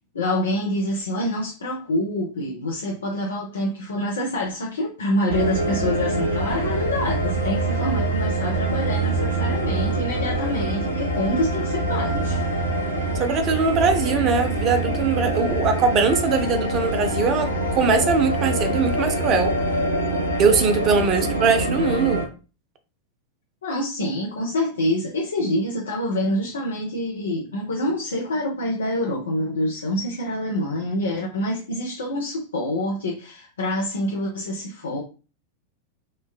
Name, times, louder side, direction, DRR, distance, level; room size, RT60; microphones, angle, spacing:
voice 1, 0.1-12.4 23.6-35.0, left 1 dB, 70° left, 0.5 m, -26 dB
sound 1, 5.3-22.2, right 2 dB, 90° right, 0.7 m, -25 dB
voice 2, 13.2-19.5 20.4-22.2, right 5 dB, 35° right, 0.4 m, -21 dB
3.2 x 2.1 x 2.2 m
figure-of-eight pair, 90°, 0 cm